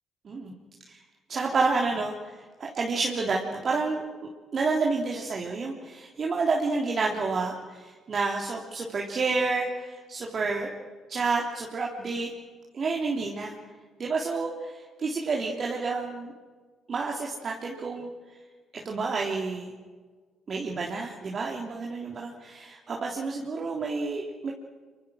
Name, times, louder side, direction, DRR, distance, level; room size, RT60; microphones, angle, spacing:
voice 1, 0.2-0.6 0.9-1.0 1.3-2.3 2.6-10.7 11.1-12.3 12.7-13.5 14.0-16.3 16.9-18.1 18.7-19.7 20.5-24.5, right 4 dB, 50° right, 0 dB, 3.2 m, -29 dB
26.0 x 25.5 x 6.4 m, 1.5 s
hypercardioid pair, 55°, 0 cm